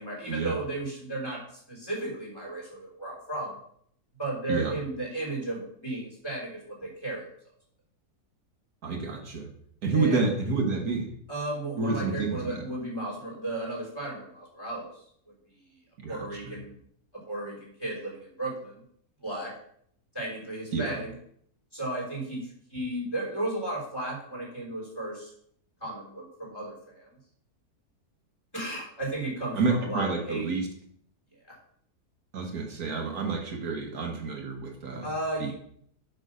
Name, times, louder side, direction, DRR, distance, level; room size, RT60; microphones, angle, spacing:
voice 1, 0.0-1.4 1.7-3.6 4.2-7.2 9.9-10.3 11.3-14.9 16.1-16.7 17.3-18.8 19.2-19.5 20.1-21.1 21.7-25.3 25.8-27.1 28.5-30.5 35.0-35.5, right 1 dB, 15° left, -4 dB, 3.9 m, -34 dB
voice 2, 8.8-9.5 9.8-11.1 11.8-12.6 16.0-16.6 20.7-20.9 29.5-30.7 32.3-35.1 35.4-35.5, right 4 dB, 70° right, 2 dB, 1.6 m, -29 dB
6.7 x 6.1 x 6.2 m, 0.66 s
omnidirectional pair, 1.6 m